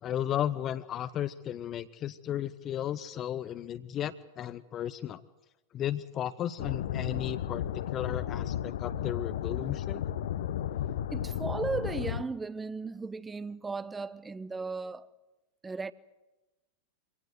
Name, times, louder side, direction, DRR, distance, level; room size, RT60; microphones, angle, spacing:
voice 1, 0.0-5.2 5.7-10.0, left 11 dB, 30° left, 0.7 m, -34 dB
sound 1, 6.6-12.2, left 10 dB, 60° left, 0.8 m, -34 dB
voice 2, 11.1-15.1 15.6-15.9, right 4 dB, 10° right, 0.8 m, -36 dB
24.5 x 18.5 x 8.0 m
figure-of-eight pair, 90°, 0 cm